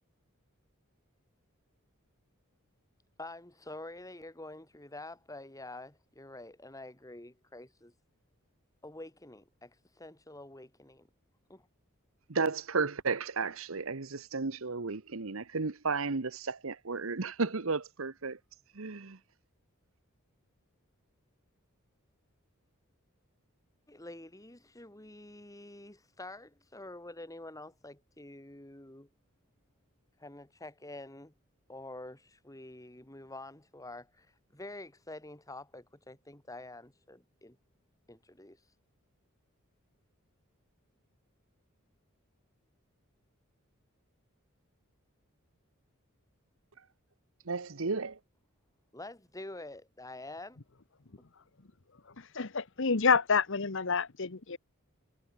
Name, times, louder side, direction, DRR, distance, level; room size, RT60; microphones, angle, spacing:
voice 1, 3.2-7.9 8.8-11.1 11.5-11.7 23.9-29.1 30.2-31.3 31.7-37.6 38.1-38.7 48.9-50.6, left 2 dB, 15° left, 2.5 m, -47 dB
voice 2, 12.3-18.4 18.7-19.2 47.4-48.2, right 4 dB, 70° right, 1.1 m, -33 dB
voice 3, 52.2-54.6, left 5 dB, 60° left, 1.1 m, -28 dB
head